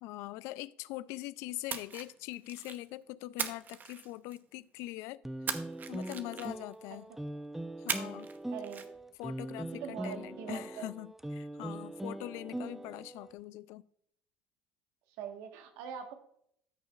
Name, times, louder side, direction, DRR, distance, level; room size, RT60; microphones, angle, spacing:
voice 1, 0.0-5.2 5.9-7.1 7.8-8.3 9.2-13.8, left 17 dB, 75° left, 0.3 m, -42 dB
Splash splatter, 1.7-2.9 3.4-4.6 5.5-6.7 7.9-8.4 8.6-8.9, right 6 dB, 40° right, 0.8 m, -38 dB
sound 1, 5.2-13.3, right 1 dB, 5° right, 0.5 m, -41 dB
voice 2, 8.5-8.9 9.8-10.9 15.2-16.1, right 8 dB, 80° right, 1.4 m, -42 dB
14.0 x 6.4 x 2.4 m
supercardioid pair, 80°, 5 cm